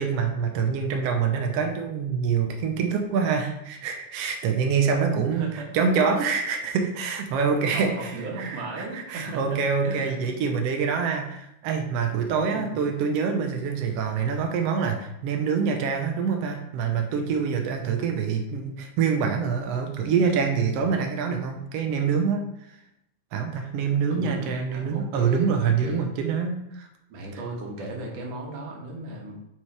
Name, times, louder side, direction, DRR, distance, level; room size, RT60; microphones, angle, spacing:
voice 1, 0.0-22.4 23.3-26.9, right 6 dB, 85° right, 4 dB, 1.3 m, -25 dB
voice 2, 5.3-5.8 7.7-10.2 12.5-12.8 24.1-24.4 24.7-26.0 27.1-29.4, right 2 dB, 60° right, -1 dB, 2.3 m, -36 dB
8.6 x 4.6 x 3.3 m, 0.82 s
omnidirectional pair, 3.7 m